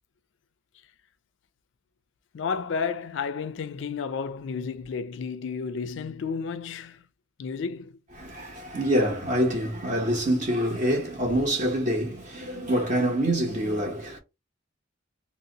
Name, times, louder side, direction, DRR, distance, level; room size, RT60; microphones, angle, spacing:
voice 1, 2.3-7.0 7.4-8.0, left 5 dB, 60° left, 0.3 m, -32 dB
voice 2, 8.2-14.2, right 1 dB, 35° right, 0.8 m, -26 dB
2.7 x 2.0 x 3.7 m
head